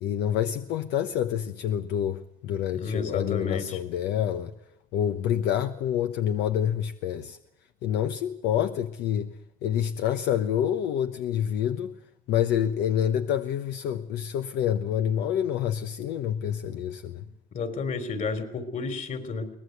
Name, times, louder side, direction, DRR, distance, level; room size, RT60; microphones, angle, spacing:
voice 1, 0.0-4.5 4.9-7.4 7.8-9.3 9.6-12.0 12.3-17.3, left 10 dB, 85° left, 1.1 m, -27 dB
voice 2, 2.8-3.8 17.5-19.5, left 4 dB, 50° left, 3.8 m, -31 dB
23.0 x 19.0 x 8.1 m
cardioid pair, 110°, 17 cm